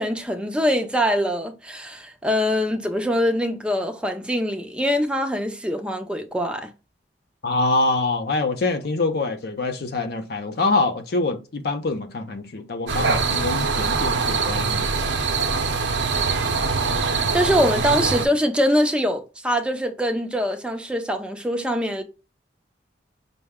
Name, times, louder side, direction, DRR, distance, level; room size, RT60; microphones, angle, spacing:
voice 1, 0.0-6.7 17.3-22.0, equal, 5° right, 0.4 m, -23 dB
voice 2, 7.4-14.9, left 3 dB, 55° left, 0.5 m, -25 dB
sound 1, 12.9-18.3, right 4 dB, 70° right, 0.6 m, -23 dB
5.5 x 2.1 x 3.5 m
head